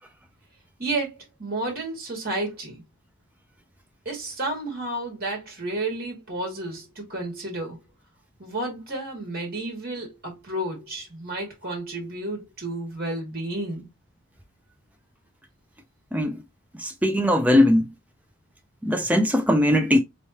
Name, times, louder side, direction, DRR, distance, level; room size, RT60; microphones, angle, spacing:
voice 1, 0.8-2.8 4.1-7.8 8.4-13.9, right 2 dB, 45° right, 1.8 m, -31 dB
voice 2, 16.1-16.4 16.8-17.9 18.8-20.0, left 1 dB, 5° right, 0.5 m, -20 dB
3.4 x 3.2 x 2.8 m
head